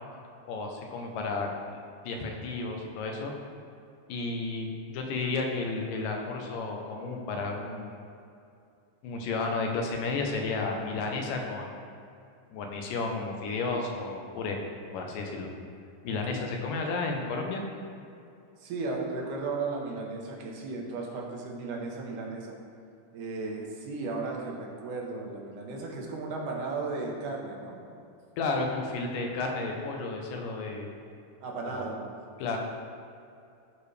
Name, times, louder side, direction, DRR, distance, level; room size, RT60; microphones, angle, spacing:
voice 1, 0.5-1.5 2.0-3.3 4.1-8.0 9.0-11.8 12.5-14.6 14.9-15.5 16.0-17.6 28.4-30.9 31.6-31.8 32.4-32.6, left 3 dB, 85° left, 2 dB, 2.5 m, -32 dB
voice 2, 18.6-22.6 23.1-27.8 31.4-32.0, right 3 dB, 75° right, -1 dB, 2.6 m, -35 dB
13.5 x 4.9 x 3.3 m, 2.5 s
omnidirectional pair, 3.7 m